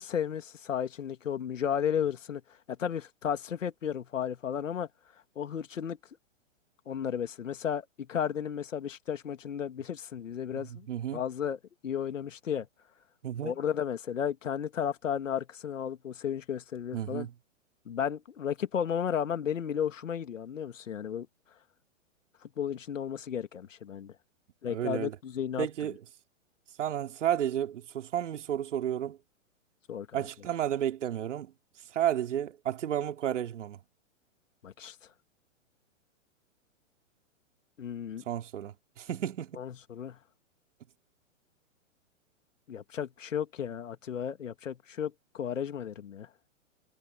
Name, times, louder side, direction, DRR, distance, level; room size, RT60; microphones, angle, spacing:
voice 1, 0.0-2.4 2.7-4.9 5.4-6.0 6.9-10.9 11.1-12.7 13.4-17.3 17.9-21.3 22.6-24.1 24.6-25.7 29.9-30.2 34.6-35.0 37.8-38.2 39.6-40.2 42.7-46.3, left 8 dB, 75° left, 2.6 m, -33 dB
voice 2, 10.5-11.2 13.2-13.5 16.9-17.3 24.7-25.2 25.6-26.0 26.8-29.2 30.1-31.5 31.9-33.8 38.3-39.6, right 10 dB, 65° right, 3.1 m, -32 dB
hypercardioid pair, 125°, 39 cm